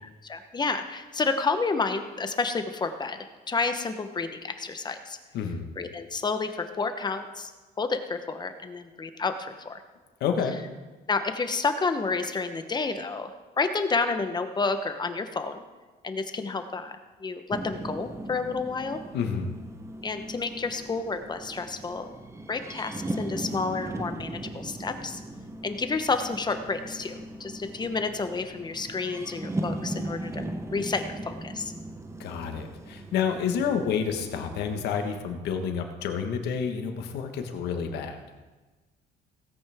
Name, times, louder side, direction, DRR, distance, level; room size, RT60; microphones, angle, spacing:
voice 1, 0.2-5.2 5.8-7.5 7.8-9.8 11.1-13.3 13.6-15.6 16.0-19.0 20.0-22.1 22.5-25.2 25.6-30.4 30.7-31.7, left 4 dB, 25° left, 8 dB, 1.0 m, -30 dB
voice 2, 5.3-5.6 10.2-10.6 19.1-19.5 32.2-38.2, left 6 dB, 80° left, 5 dB, 1.5 m, -29 dB
sound 1, 17.5-35.2, right 1 dB, 15° right, 1.0 m, -38 dB
17.5 x 8.8 x 3.6 m, 1.2 s
cardioid pair, 110°, 17 cm